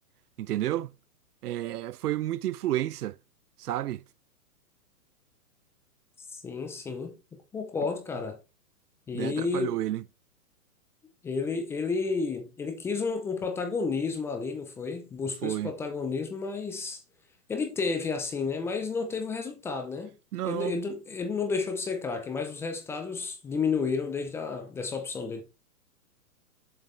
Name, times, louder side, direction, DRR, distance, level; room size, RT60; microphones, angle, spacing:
voice 1, 0.4-0.9 1.4-3.2 3.6-4.0 9.1-10.0 15.4-15.7 20.3-20.8, right 14 dB, 80° right, 0.6 m, -30 dB
voice 2, 6.3-7.2 7.5-8.4 9.1-9.7 11.2-17.0 17.5-20.1 20.4-25.4, left 4 dB, 5° left, 0.5 m, -31 dB
7.5 x 6.2 x 3.3 m
hypercardioid pair, 150°, 46 cm